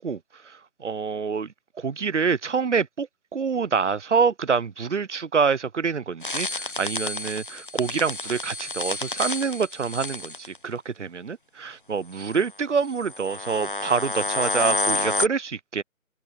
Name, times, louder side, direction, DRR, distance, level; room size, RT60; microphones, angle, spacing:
voice 1, 0.0-15.8, right 5 dB, 60° right, 0.7 m, -26 dB
sound 1, 6.2-10.6 12.2-12.4 13.0-15.3, left 2 dB, 40° left, 0.6 m, -29 dB
figure-of-eight pair, 155°, 41 cm